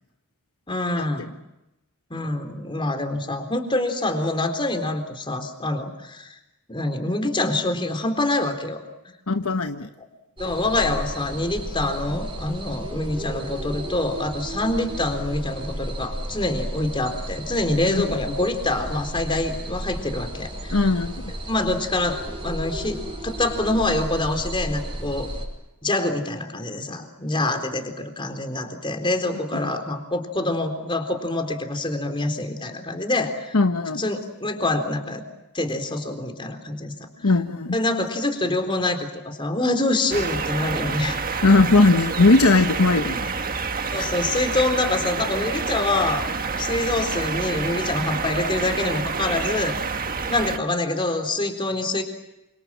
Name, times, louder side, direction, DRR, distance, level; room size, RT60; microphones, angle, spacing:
voice 1, 0.7-1.3 2.1-6.4 6.7-8.8 10.4-20.8 21.5-25.3 25.8-33.6 34.0-35.3 35.5-36.9 37.7-41.2 43.9-46.3 46.6-49.8 50.3-52.0, left 2 dB, 25° left, 5 dB, 3.8 m, -25 dB
voice 2, 9.3-9.9 17.8-18.0 20.7-21.3 33.5-34.0 37.2-37.8 41.4-43.3 44.0-44.1, left 3 dB, 70° left, 6 dB, 1.2 m, -19 dB
sound 1, 10.4-25.5, right 1 dB, 25° right, 5.3 m, -33 dB
sound 2, 40.1-50.6, right 4 dB, 40° right, 1.6 m, -28 dB
28.5 x 26.0 x 7.5 m, 0.93 s
head